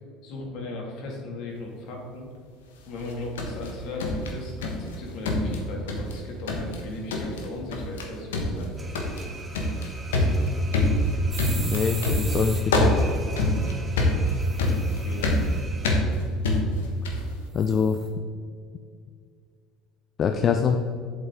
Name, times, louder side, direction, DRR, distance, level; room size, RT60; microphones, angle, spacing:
voice 1, 0.2-2.3 2.9-8.7 15.0-15.4, left 2 dB, 65° left, 0 dB, 2.2 m, -37 dB
sound 1, 3.0-5.0 5.3-6.2 6.5-6.8 7.1-7.5 7.7-8.1 8.3-17.3, left 1 dB, 85° left, 1.2 m, -25 dB
sound 2, 8.8-16.0, right 2 dB, 20° right, 1.6 m, -42 dB
sound 3, 11.3-12.6 14.4-15.4 17.6-18.1, right 5 dB, 40° right, 2.3 m, -39 dB
voice 2, 11.5-12.9 17.5-18.0 20.2-20.8, left 6 dB, 45° left, 7 dB, 0.5 m, -23 dB
8.2 x 7.7 x 3.7 m, 2.2 s
hypercardioid pair, 75°, 0 cm